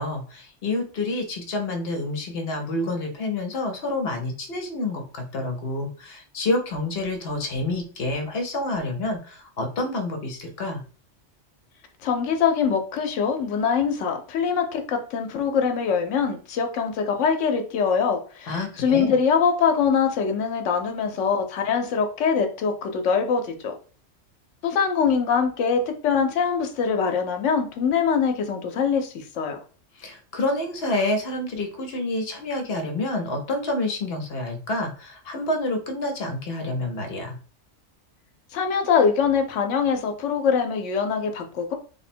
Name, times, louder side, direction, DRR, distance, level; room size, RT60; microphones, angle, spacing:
voice 1, 0.0-10.8 18.5-19.1 30.0-37.4, left 2 dB, 60° left, 4 dB, 1.0 m, -28 dB
voice 2, 12.0-23.7 24.6-29.6 38.5-41.7, left 6 dB, 85° left, 5 dB, 1.0 m, -23 dB
3.2 x 2.1 x 4.2 m, 0.38 s
omnidirectional pair, 1.2 m